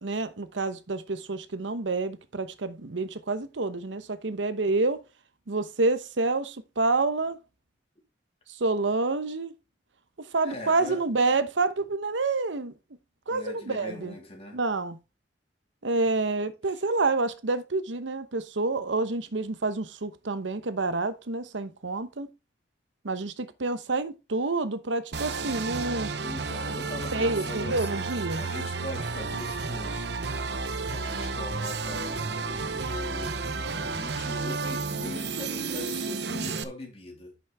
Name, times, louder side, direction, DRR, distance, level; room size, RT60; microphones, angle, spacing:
voice 1, 0.0-5.0 5.5-7.4 8.5-9.5 10.2-12.7 13.3-14.1 14.5-15.0 15.8-22.3 23.0-26.1 27.1-28.4, right 3 dB, 90° right, 0.9 m, -28 dB
voice 2, 10.4-11.0 13.3-14.6 16.7-16.8 26.2-28.0 28.3-30.1 30.9-37.3, left 1 dB, 35° left, 3.2 m, -41 dB
sound 1, 25.1-36.6, right 4 dB, 65° right, 0.9 m, -32 dB
10.5 x 6.4 x 3.5 m
head